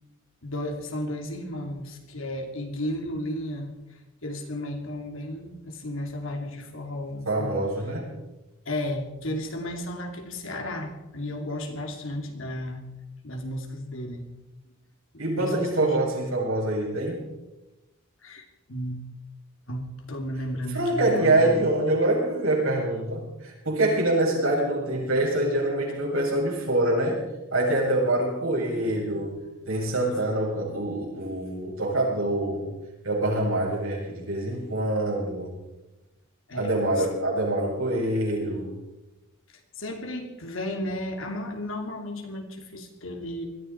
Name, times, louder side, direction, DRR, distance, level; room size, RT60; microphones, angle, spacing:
voice 1, 0.4-3.8 4.2-7.7 8.6-12.9 13.2-14.3 15.4-16.0 18.2-19.0 19.7-21.6 36.5-37.1 39.8-43.4, left 1 dB, 65° left, 3 dB, 2.8 m, -34 dB
voice 2, 7.3-8.1 15.2-17.2 20.7-27.2 27.5-29.4 29.7-32.7 33.0-35.5 36.5-38.8, right 1 dB, 75° right, -3 dB, 7.2 m, -25 dB
21.0 x 14.0 x 4.7 m, 1.0 s
head